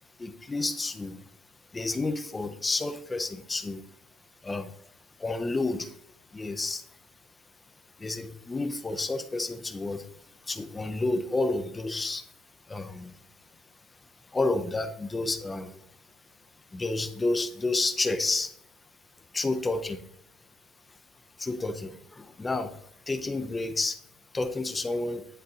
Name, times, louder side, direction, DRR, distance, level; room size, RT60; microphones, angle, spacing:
voice 1, 0.2-1.2 1.7-3.9 4.4-4.8 5.2-6.0 6.3-6.8 8.0-12.3 12.7-13.2 14.3-15.8 16.7-18.5 19.3-20.1 20.9-21.0 21.4-24.0 24.3-25.3, left 2 dB, 15° left, 9 dB, 0.4 m, -30 dB
10.0 x 3.8 x 2.7 m, 0.70 s
cardioid pair, 155°, 0 cm